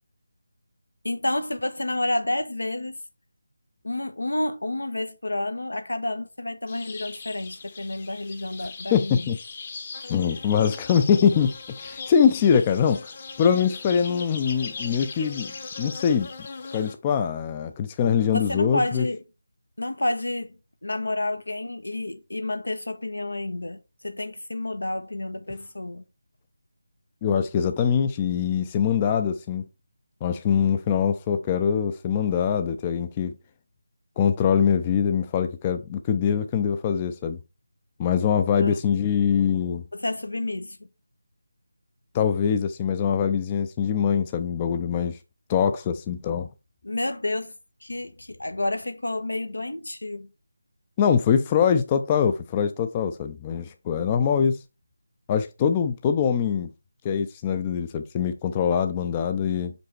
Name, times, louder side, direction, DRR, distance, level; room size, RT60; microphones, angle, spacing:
voice 1, 1.0-3.0 3.8-9.3 18.3-19.2 19.8-26.1 38.6-38.8 39.9-40.8 46.8-47.5 47.8-50.3, left 2 dB, 85° left, 1.3 m, -30 dB
sound 1, 6.7-16.9, left 4 dB, 35° left, 1.0 m, -39 dB
voice 2, 8.9-9.4 10.1-11.5 11.8-13.1 13.4-15.5 15.8-16.3 16.7-19.0 27.2-29.6 30.2-33.3 34.2-37.4 38.0-39.8 42.1-45.2 45.5-46.5 51.0-54.6 55.3-56.7 57.0-59.7, left 7 dB, 20° left, 0.4 m, -23 dB
5.5 x 5.2 x 4.5 m
figure-of-eight pair, 165°, 0 cm